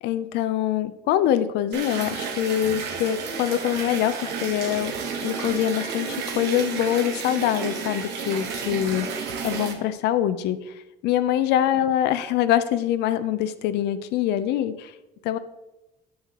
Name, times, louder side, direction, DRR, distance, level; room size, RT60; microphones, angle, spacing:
voice 1, 0.0-4.9 5.2-10.7 11.0-14.9 15.2-15.4, left 11 dB, 85° left, 12 dB, 0.5 m, -24 dB
sound 1, 1.7-9.7, right 5 dB, 80° right, 1.2 m, -31 dB
9.4 x 7.4 x 3.0 m, 1.0 s
cardioid pair, 110°, 17 cm